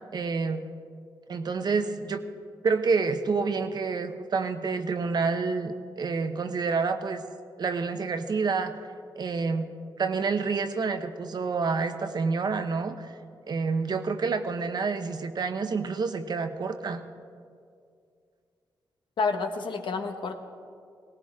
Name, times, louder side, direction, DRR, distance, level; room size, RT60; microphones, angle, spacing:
voice 1, 0.1-0.6 1.3-2.2 2.6-7.2 7.6-8.7 9.2-9.7 10.0-13.1 13.5-17.0, right 4 dB, 55° right, 8 dB, 1.0 m, -28 dB
voice 2, 19.2-20.4, left 4 dB, 75° left, 4 dB, 1.4 m, -29 dB
18.5 x 17.5 x 3.7 m, 2.3 s
cardioid pair, 70°, 8 cm